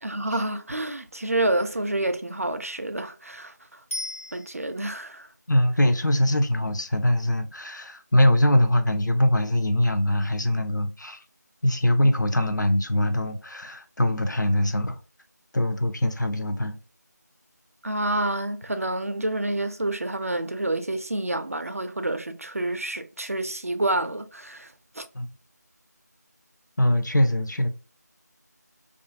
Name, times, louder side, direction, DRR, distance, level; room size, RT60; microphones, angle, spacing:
voice 1, 0.0-3.8 4.3-5.3 17.8-25.0, right 1 dB, 55° right, 0.3 m, -28 dB
Bicycle bell, 3.9-5.0 14.1-14.2, left 1 dB, 45° left, 0.7 m, -36 dB
voice 2, 5.5-11.2 11.6-15.0 15.5-16.8 25.1-25.3 26.8-27.7, left 1 dB, 85° left, 0.5 m, -22 dB
2.5 x 2.4 x 2.5 m
figure-of-eight pair, 175°, 10 cm